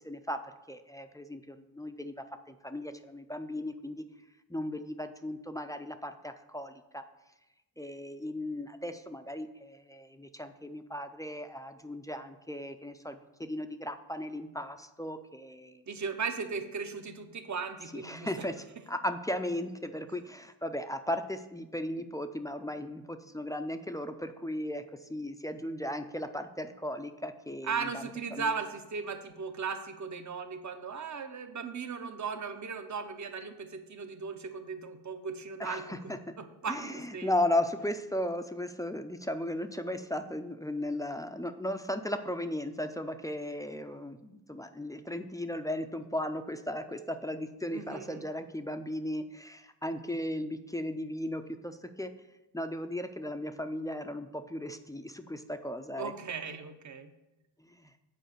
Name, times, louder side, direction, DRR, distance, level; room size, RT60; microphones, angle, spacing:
voice 1, 0.0-0.4 0.7-4.0 4.5-7.0 7.8-15.8 17.9-28.0 28.3-28.5 35.6-36.3 36.7-52.1 52.5-56.1 57.6-57.9, left 1 dB, 10° left, 8 dB, 0.3 m, -36 dB
voice 2, 15.9-18.4 27.6-37.3 47.7-48.2 56.0-57.1, right 5 dB, 45° right, 8 dB, 0.8 m, -37 dB
7.8 x 4.9 x 6.6 m, 0.95 s
wide cardioid pair, 150°, 40 cm